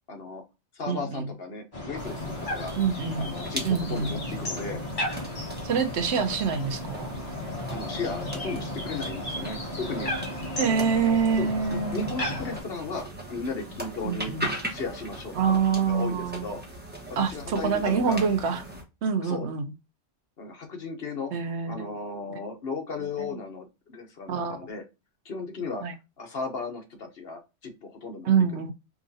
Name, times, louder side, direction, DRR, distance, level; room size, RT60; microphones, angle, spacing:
voice 1, 0.1-0.4 0.7-2.7 3.2-4.8 7.7-10.3 10.6-10.8 11.4-14.3 14.7-16.6 17.3-18.2 19.2-19.5 20.4-21.3 21.7-24.8 25.2-25.8 26.2-28.3, left 3 dB, 60° left, 1.1 m, -35 dB
voice 2, 0.9-1.3 2.8-3.3 3.6-4.2 5.6-7.1 10.6-12.1 14.0-14.5 15.3-16.4 17.2-18.6 19.0-19.7 21.3-21.9 22.3-22.4 23.2-23.4 24.3-24.6 25.8-25.9 28.2-28.7, right 6 dB, 70° right, 0.9 m, -26 dB
sound 1, 1.7-12.6, left 1 dB, 30° left, 1.3 m, -34 dB
sound 2, 2.0-18.8, equal, 10° right, 1.0 m, -40 dB
4.8 x 2.5 x 2.6 m
omnidirectional pair, 1.2 m